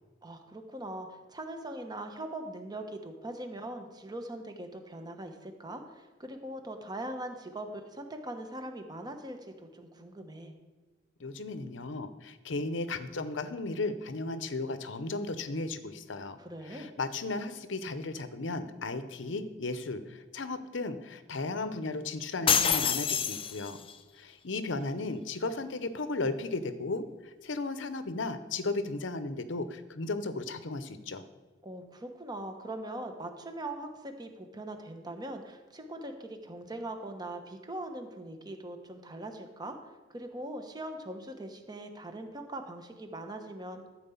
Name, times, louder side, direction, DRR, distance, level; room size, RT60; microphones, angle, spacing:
voice 1, 0.2-10.5 16.4-16.9 31.6-39.8 40.1-43.9, right 1 dB, 20° right, 5 dB, 1.1 m, -41 dB
voice 2, 11.2-16.4 16.7-23.8 24.2-27.0 27.4-31.2, left 3 dB, 70° left, 11 dB, 0.8 m, -35 dB
sound 1, 22.5-23.9, left 7 dB, 30° left, 0.6 m, -27 dB
13.0 x 4.8 x 7.0 m, 1.3 s
head